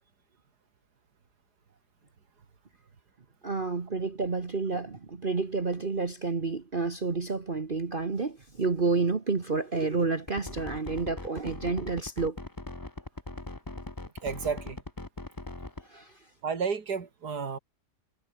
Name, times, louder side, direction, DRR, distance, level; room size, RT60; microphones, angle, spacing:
voice 1, 3.4-12.4 15.9-16.1, right 4 dB, 35° right, 1.6 m, -30 dB
sound 1, 10.3-15.8, left 2 dB, 15° left, 1.2 m, -40 dB
voice 2, 14.2-14.8 16.4-17.6, right 5 dB, 80° right, 2.8 m, -31 dB
omnidirectional pair, 1.7 m